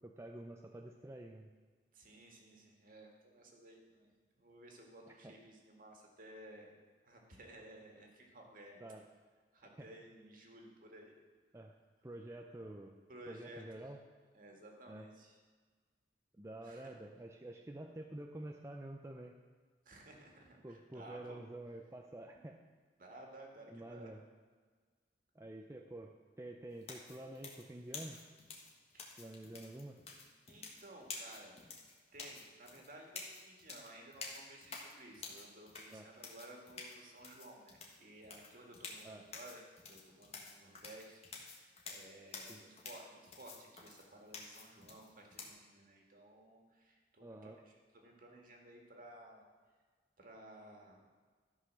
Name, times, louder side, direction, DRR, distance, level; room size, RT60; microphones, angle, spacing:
voice 1, 0.0-1.5 5.1-5.4 8.8-9.0 9.6-9.9 11.5-11.7 12.0-13.0 13.3-14.0 14.9-15.1 16.4-19.3 20.6-22.5 23.7-24.2 25.3-28.2 29.2-30.0 35.9-36.1 39.0-39.3 42.5-42.6 47.2-47.6, right 1 dB, 15° right, 2 dB, 0.5 m, -49 dB
voice 2, 1.9-6.7 7.0-8.8 9.5-11.1 13.1-13.9 14.3-15.4 16.6-16.9 19.9-21.4 23.0-24.1 28.9-29.2 30.5-31.6 32.1-49.4 50.2-51.2, right 1 dB, 50° right, 1 dB, 2.0 m, -56 dB
sound 1, 26.8-45.5, left 4 dB, 35° left, 1.6 m, -50 dB
13.0 x 5.6 x 6.3 m, 1.5 s
head